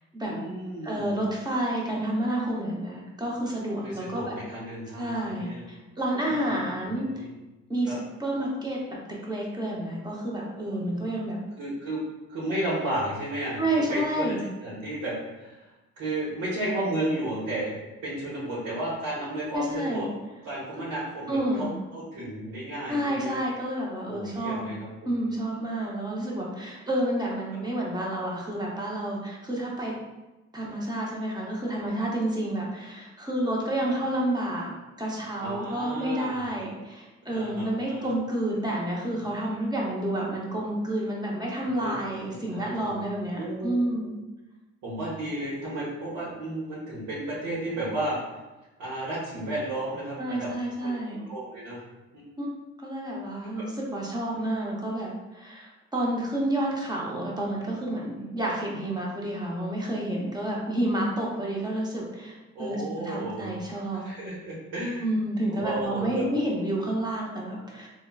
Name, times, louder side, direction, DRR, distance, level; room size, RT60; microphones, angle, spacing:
voice 1, 0.3-1.1 3.8-5.6 6.2-7.3 7.9-8.0 11.6-12.0 12.3-15.7 16.0-20.1 20.4-23.4 24.1-24.9 27.5-27.6 33.8-33.9 35.4-36.4 37.3-38.1 41.6-42.0 42.3-43.0 43.3-43.7 44.8-48.2 48.8-50.5 50.8-51.8 52.1-52.2 53.6-53.7 62.5-63.5 64.0-65.1 65.5-66.3, right 1 dB, 80° right, -8 dB, 1.0 m, -33 dB
voice 2, 0.8-4.4 5.0-7.2 7.7-11.4 13.6-14.4 19.5-20.0 21.3-21.7 22.9-24.7 25.1-30.0 30.5-34.7 35.0-44.1 50.2-51.2 52.4-52.5 52.8-64.0 65.0-67.9, right 1 dB, 15° right, -3 dB, 0.7 m, -30 dB
3.7 x 2.1 x 2.2 m, 1.1 s
cardioid pair, 90°, 30 cm